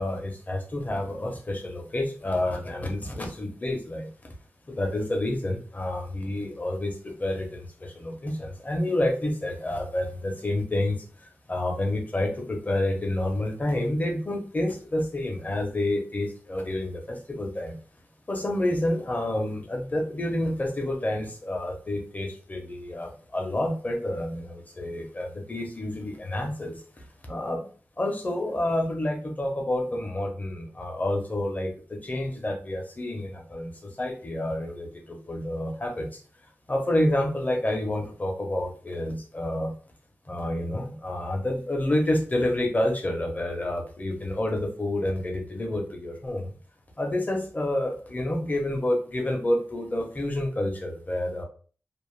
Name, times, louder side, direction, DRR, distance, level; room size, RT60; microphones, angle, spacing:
voice 1, 0.0-4.1 4.7-17.8 18.3-26.8 27.3-27.7 28.0-36.2 36.7-39.7 40.3-46.5 47.0-51.4, left 1 dB, 30° left, 2 dB, 0.6 m, -29 dB
2.5 x 2.0 x 3.1 m, 0.41 s
wide cardioid pair, 95°, 5 cm